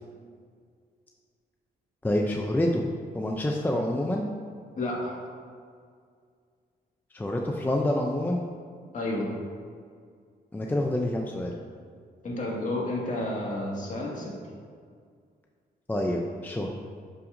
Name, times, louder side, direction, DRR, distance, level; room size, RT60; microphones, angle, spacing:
voice 1, 2.0-2.9 3.1-4.3 7.1-8.4 10.5-11.5 15.9-16.7, left 1 dB, 10° left, 1 dB, 0.5 m, -27 dB
voice 2, 4.8-5.2 8.9-9.3 12.2-14.3, left 1 dB, 50° left, -4 dB, 1.9 m, -31 dB
11.0 x 5.8 x 2.6 m, 2.1 s
wide cardioid pair, 140°, 17 cm